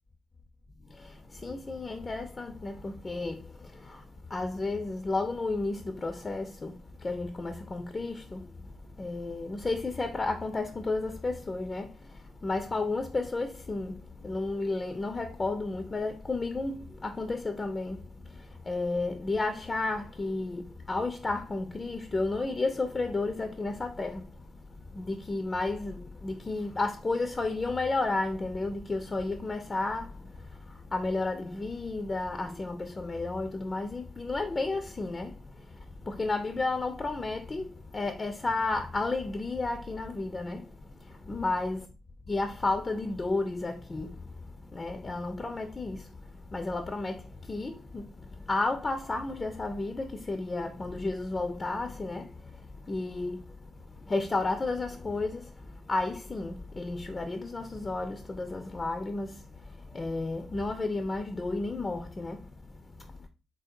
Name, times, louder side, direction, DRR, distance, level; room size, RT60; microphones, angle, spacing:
voice 1, 0.8-41.9 42.3-63.3, left 3 dB, 30° left, 0.4 m, -33 dB
3.3 x 2.6 x 2.5 m
hypercardioid pair, 50°, 0 cm